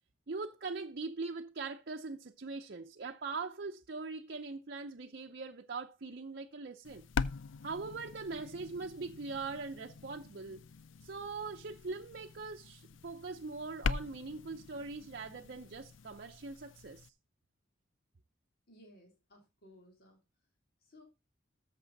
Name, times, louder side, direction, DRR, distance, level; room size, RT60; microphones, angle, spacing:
voice 1, 0.3-7.1 7.6-10.6 11.0-17.1, right 4 dB, 55° right, 0.7 m, -41 dB
sound 1, 6.8-17.1, left 5 dB, 75° left, 0.5 m, -42 dB
voice 2, 18.7-20.2 20.8-21.0, left 1 dB, 55° left, 3.2 m, -59 dB
13.5 x 6.7 x 4.0 m
head